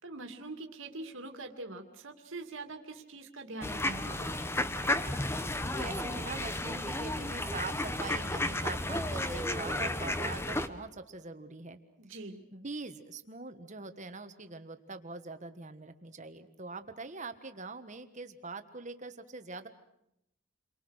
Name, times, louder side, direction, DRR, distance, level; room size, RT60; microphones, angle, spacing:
voice 1, 0.0-4.5 12.0-12.4, right 2 dB, 65° right, 3 dB, 2.5 m, -44 dB
sound 1, 3.6-10.7, left 1 dB, 10° left, 0.9 m, -33 dB
voice 2, 5.7-11.8 12.5-19.7, right 3 dB, 35° right, 8 dB, 1.5 m, -43 dB
29.5 x 24.0 x 6.4 m, 0.80 s
head